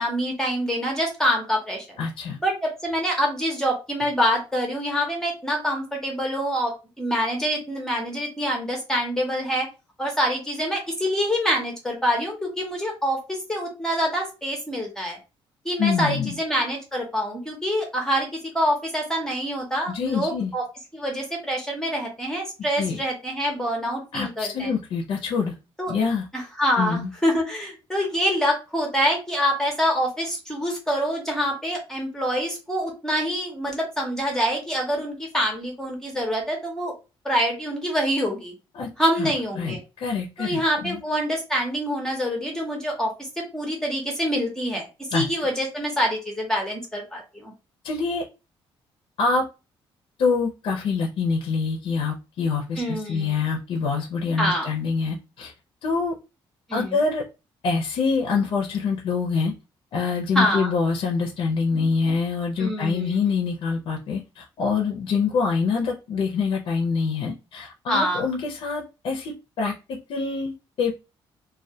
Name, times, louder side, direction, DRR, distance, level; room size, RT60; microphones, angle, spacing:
voice 1, 0.0-2.0 2.4-9.7 10.0-15.2 15.6-18.3 18.5-20.6 20.9-24.7 25.8-25.9 26.3-36.9 37.2-38.5 39.0-39.8 40.4-47.5 52.8-53.3 54.4-54.7 56.7-57.0 60.3-60.7 62.6-63.2 67.9-68.2, equal, 5° left, 0 dB, 0.6 m, -26 dB
voice 2, 2.0-2.4 15.8-16.4 19.9-20.5 22.8-23.0 24.1-25.5 25.9-26.3 26.8-27.1 38.7-38.9 39.2-41.0 45.1-45.3 47.8-48.2 49.2-49.5 50.2-55.5 55.8-56.2 56.7-57.2 57.6-59.5 59.9-71.0, left 5 dB, 60° left, 1 dB, 0.4 m, -25 dB
2.1 x 2.1 x 2.6 m, 0.29 s
cardioid pair, 160°, 10 cm